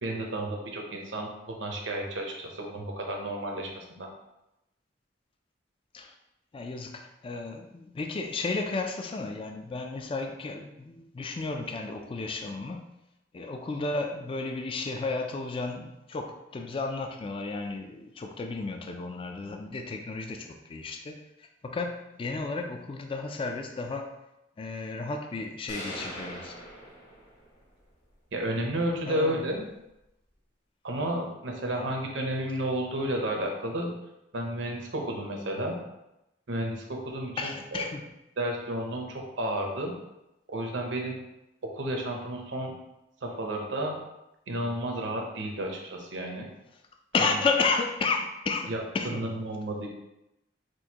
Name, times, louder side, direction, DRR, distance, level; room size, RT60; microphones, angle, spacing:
voice 1, 0.0-4.1 28.3-29.7 30.8-33.9 34.3-35.8 36.5-37.8 38.4-39.9 40.5-41.2 41.7-42.7 43.2-44.0 44.5-46.5 47.2-47.3 48.7-49.9, right 1 dB, 75° right, 1 dB, 0.8 m, -32 dB
voice 2, 6.5-12.9 13.3-24.1 24.6-26.6 29.1-29.4 31.7-31.9 37.4-38.0 47.1-49.3, left 3 dB, 30° left, 4 dB, 0.3 m, -33 dB
sound 1, 25.7-27.6, equal, 65° left, 1.5 m, -41 dB
6.2 x 2.6 x 2.9 m, 0.91 s
head